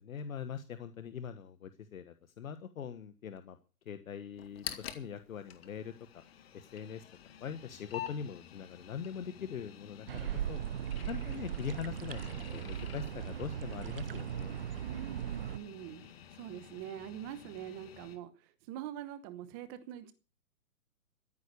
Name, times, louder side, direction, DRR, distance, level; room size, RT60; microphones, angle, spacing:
voice 1, 0.0-3.6 3.8-6.2 6.5-7.0 7.4-10.6 11.0-14.5, left 7 dB, 60° left, 10 dB, 1.5 m, -42 dB
sound 1, 4.4-18.2, left 10 dB, 40° left, 2.0 m, -49 dB
sound 2, 10.1-15.6, right 10 dB, 40° right, 0.8 m, -38 dB
voice 2, 14.8-16.0 16.3-20.1, right 11 dB, 15° right, 12 dB, 0.9 m, -44 dB
14.0 x 9.8 x 6.8 m, 0.34 s
hypercardioid pair, 160°, 45 cm